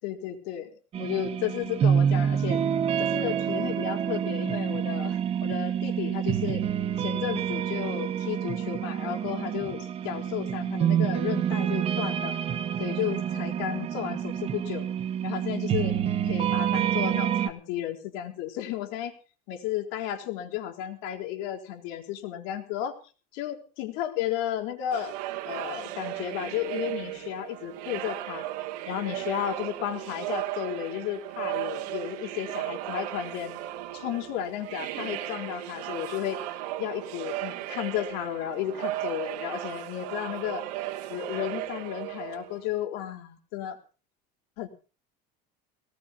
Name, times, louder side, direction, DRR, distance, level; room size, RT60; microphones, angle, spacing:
voice 1, 0.0-2.6 3.0-6.6 7.0-12.3 12.8-14.8 15.2-16.0 16.2-19.1 19.5-22.9 23.3-25.1 25.4-28.5 28.9-33.6 33.9-36.4 36.8-40.6 41.1-43.8 44.6-44.7, left 11 dB, 60° left, 5 dB, 4.1 m, -33 dB
sound 1, 0.9-17.5, right 8 dB, 30° right, 1.5 m, -27 dB
sound 2, 24.9-42.8, right 14 dB, 90° right, 2.5 m, -36 dB
20.5 x 18.5 x 2.9 m, 0.36 s
cardioid pair, 165°, 20 cm